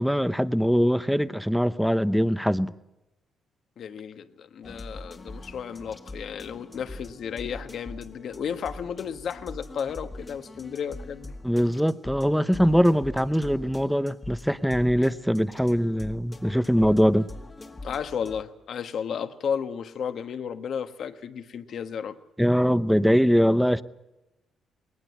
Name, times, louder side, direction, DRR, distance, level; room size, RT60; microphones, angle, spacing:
voice 1, 0.0-2.7 11.4-17.3 22.4-23.8, equal, ahead, 0.8 m, -22 dB
voice 2, 3.8-11.3 17.8-22.2, left 7 dB, 60° left, 1.3 m, -33 dB
sound 1, 4.6-18.4, left 2 dB, 20° left, 1.6 m, -43 dB
20.0 x 19.5 x 8.3 m
cardioid pair, 90°, 0 cm